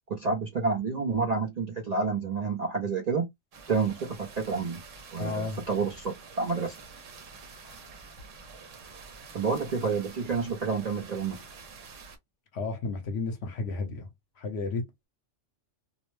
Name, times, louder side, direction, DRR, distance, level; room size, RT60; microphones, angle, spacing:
voice 1, 0.1-3.3 3.7-4.8 5.1-6.8 9.3-11.4, right 4 dB, 50° right, 0.5 m, -29 dB
sound 1, 3.5-12.2, right 4 dB, 85° right, 1.1 m, -48 dB
voice 2, 5.2-5.6 12.5-14.1 14.4-15.1, left 3 dB, 65° left, 0.9 m, -32 dB
2.5 x 2.0 x 3.0 m
omnidirectional pair, 1.2 m